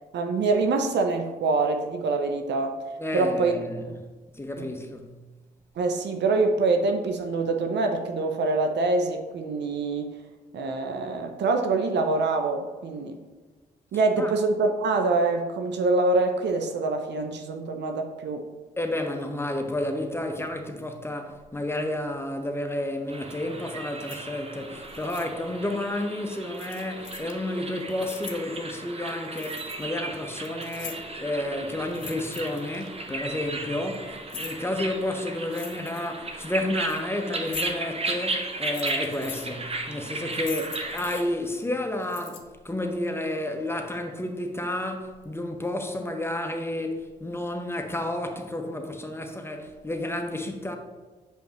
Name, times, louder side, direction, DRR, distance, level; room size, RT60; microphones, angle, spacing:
voice 1, 0.1-2.8 3.1-3.5 3.9-4.0 4.6-4.7 5.8-10.1 10.5-13.1 13.9-18.4, right 3 dB, 60° right, 0.7 m, -25 dB
voice 2, 3.0-3.8 4.3-5.1 14.2-14.3 18.8-50.8, left 1 dB, 10° left, 1.0 m, -31 dB
sound 1, 23.1-41.2, right 2 dB, 30° right, 1.0 m, -35 dB
sound 2, 24.0-24.2 24.8-25.2 26.5-27.3 27.8-28.4 29.0-29.9 30.2-31.2 31.8-32.9 33.7-34.6 35.5-36.1 36.7-37.0 37.4-37.7 38.4-39.5 40.1-41.2 42.0-42.4, left 9 dB, 65° left, 0.8 m, -41 dB
6.7 x 5.2 x 3.0 m
hypercardioid pair, 45°, 21 cm